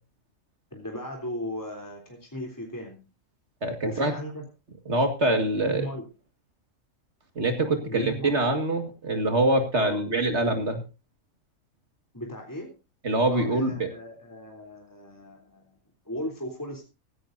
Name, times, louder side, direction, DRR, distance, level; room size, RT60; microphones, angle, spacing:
voice 1, 0.7-3.0 3.8-4.5 5.3-6.1 7.9-8.3 9.8-10.0 12.1-12.7 13.3-15.8 16.1-16.8, equal, 15° left, 1 dB, 3.4 m, -36 dB
voice 2, 3.6-4.1 4.9-5.9 7.4-10.8 13.0-13.9, right 2 dB, 55° right, 6 dB, 2.2 m, -24 dB
16.5 x 15.5 x 2.7 m, 0.30 s
omnidirectional pair, 1.4 m